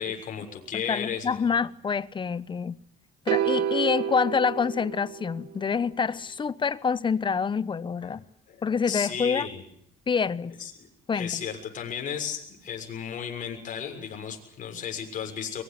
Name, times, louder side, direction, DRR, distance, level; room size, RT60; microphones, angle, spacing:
voice 1, 0.0-1.4 8.0-8.2 8.5-9.6 10.4-10.9 11.1-15.6, left 8 dB, 50° left, 6.7 m, -34 dB
voice 2, 0.7-2.8 3.3-8.2 8.6-9.5 10.1-10.5 11.1-11.4, left 6 dB, 30° left, 1.0 m, -27 dB
sound 1, 3.3-5.6, right 9 dB, 85° right, 2.2 m, -29 dB
23.5 x 22.5 x 7.8 m
cardioid pair, 110°, 17 cm